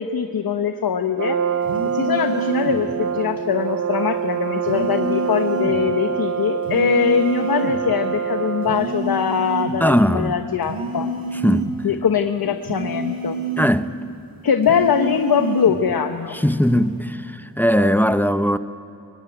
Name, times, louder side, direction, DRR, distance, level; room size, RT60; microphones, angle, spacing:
voice 1, 0.0-1.4 1.9-11.1 11.8-13.4 14.4-16.4, left 7 dB, 80° left, 1.0 m, -22 dB
Brass instrument, 1.2-9.0, right 7 dB, 50° right, 0.7 m, -25 dB
sound 1, 1.6-2.8 4.7-5.8 6.7-7.8 8.6-9.8 10.6-11.8 12.6-13.8 14.6-15.8 16.6-17.0, right 2 dB, 85° right, 4.4 m, -28 dB
voice 2, 9.8-10.4 11.4-11.7 13.6-13.9 16.3-18.6, equal, 5° left, 0.6 m, -19 dB
23.5 x 19.5 x 10.0 m
wide cardioid pair, 120°, 35 cm